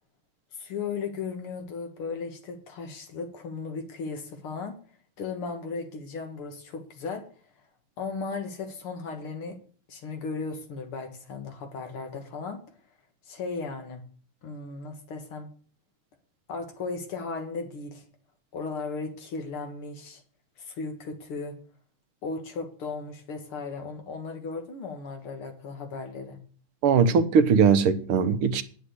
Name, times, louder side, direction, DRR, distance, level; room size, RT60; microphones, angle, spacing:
voice 1, 0.5-4.8 5.2-7.3 8.0-9.6 9.9-12.6 13.3-14.1 14.4-15.5 16.5-18.0 18.5-20.2 20.6-21.6 22.2-26.4, left 4 dB, 80° left, 2.7 m, -36 dB
voice 2, 26.8-28.6, right 6 dB, 90° right, 1.9 m, -20 dB
9.6 x 7.3 x 8.4 m
omnidirectional pair, 2.4 m